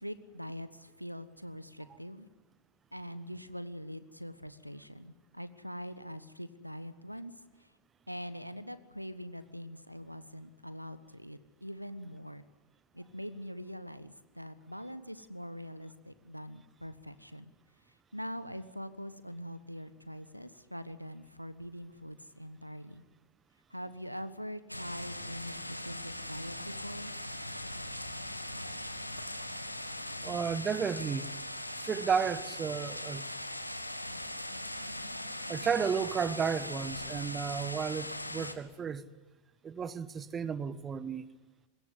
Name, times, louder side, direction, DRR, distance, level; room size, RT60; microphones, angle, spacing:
voice 1, 0.0-2.3 2.9-7.3 7.6-7.7 8.1-12.4 12.9-17.5 18.1-23.0 23.7-27.1, equal, 90° right, 1.2 m, -43 dB
sound 1, 24.7-38.5, left 1 dB, 85° left, 1.8 m, -40 dB
voice 2, 30.2-31.3 31.8-33.3 35.5-39.1 39.6-41.3, right 6 dB, 20° right, 1.1 m, -33 dB
25.0 x 21.5 x 9.8 m
figure-of-eight pair, 90°, 0 cm